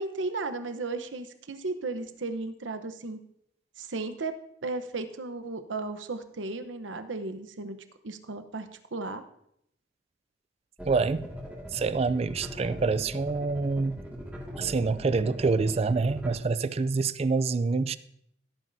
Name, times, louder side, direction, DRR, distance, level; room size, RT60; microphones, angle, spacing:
voice 1, 0.0-3.2 3.8-4.3 4.6-7.8 8.0-9.2, right 3 dB, 90° right, 0.9 m, -35 dB
sound 1, 10.8-16.3, equal, 10° right, 1.9 m, -40 dB
voice 2, 10.9-11.3 11.7-14.0 14.6-18.0, right 4 dB, 35° right, 0.4 m, -26 dB
16.0 x 8.8 x 2.7 m
head